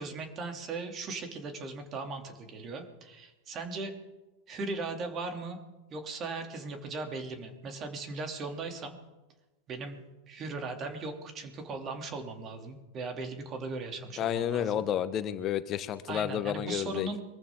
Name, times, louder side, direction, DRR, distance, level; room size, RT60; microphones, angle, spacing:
voice 1, 0.0-3.9 4.5-5.6 5.9-9.0 9.7-10.0 10.3-14.8 16.1-17.2, right 3 dB, 35° right, 4 dB, 3.3 m, -38 dB
voice 2, 14.2-17.1, left 10 dB, 40° left, 12 dB, 1.3 m, -31 dB
24.5 x 14.5 x 4.0 m, 1.1 s
figure-of-eight pair, 90°, 0 cm